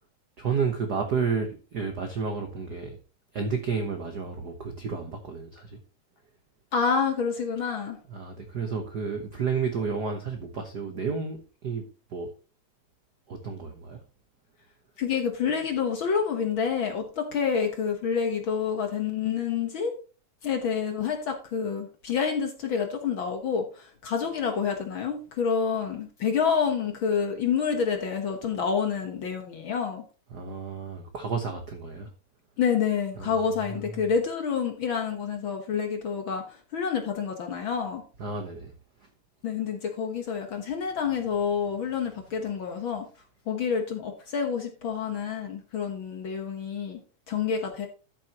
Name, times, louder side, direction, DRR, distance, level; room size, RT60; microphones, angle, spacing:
voice 1, 0.4-3.0 3.3-5.8 8.1-11.8 12.1-12.3 13.3-14.0 30.3-32.1 33.2-33.3 33.7-33.8 38.2-38.7, right 5 dB, 65° right, 1.0 m, -31 dB
voice 2, 6.7-8.0 15.0-19.9 20.4-30.0 32.6-38.0 39.4-43.1 43.5-47.0 47.3-47.9, left 6 dB, 55° left, 1.5 m, -28 dB
13.0 x 7.5 x 3.0 m
omnidirectional pair, 3.4 m